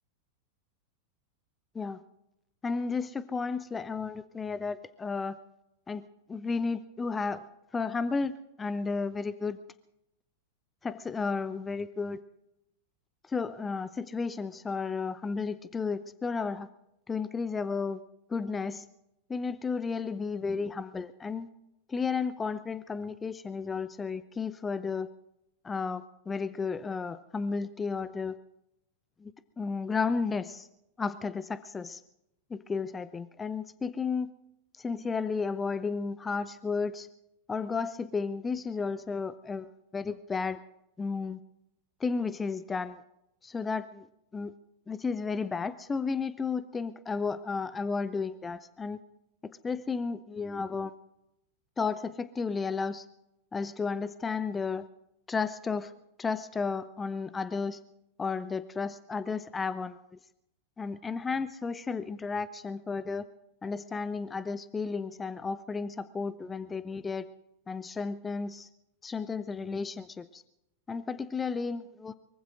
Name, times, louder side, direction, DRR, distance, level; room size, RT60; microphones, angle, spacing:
voice 1, 2.6-5.4 5.9-6.0 6.3-7.4 7.7-9.6 10.8-12.2 13.3-16.7 17.1-18.0 18.3-18.8 19.3-21.5 21.9-25.1 25.6-28.4 29.2-29.3 29.6-30.7 31.0-32.0 32.5-34.3 34.8-37.1 37.5-39.7 39.9-40.6 41.0-41.4 42.0-43.0 43.4-44.0 44.3-44.5 44.9-49.0 49.6-50.9 51.8-53.1 53.5-54.9 55.3-55.9 56.2-57.8 58.2-60.0 60.8-63.3 63.6-67.2 67.7-68.7 69.0-70.4 70.9-72.1, left 4 dB, 15° left, 15 dB, 0.5 m, -33 dB
24.0 x 23.0 x 2.5 m, 0.85 s
figure-of-eight pair, 90°, 0 cm